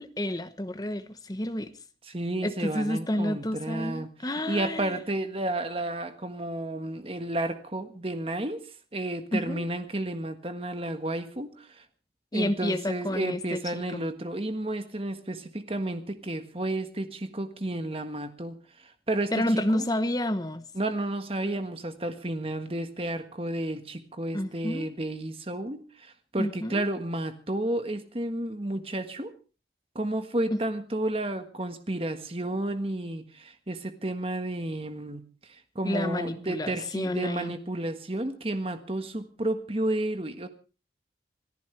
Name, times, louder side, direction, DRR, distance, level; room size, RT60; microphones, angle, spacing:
voice 1, 0.0-1.7 2.4-5.0 9.3-9.6 12.3-14.0 19.3-20.7 24.3-24.9 26.4-26.8 30.5-30.6 35.8-37.5, left 1 dB, 20° left, 1.1 m, -30 dB
voice 2, 2.1-4.1 4.5-8.6 8.9-11.8 12.3-18.6 18.8-19.4 19.7-19.8 20.7-29.3 29.9-35.2 35.5-40.5, right 1 dB, 30° right, 1.5 m, -32 dB
26.0 x 14.0 x 3.3 m
head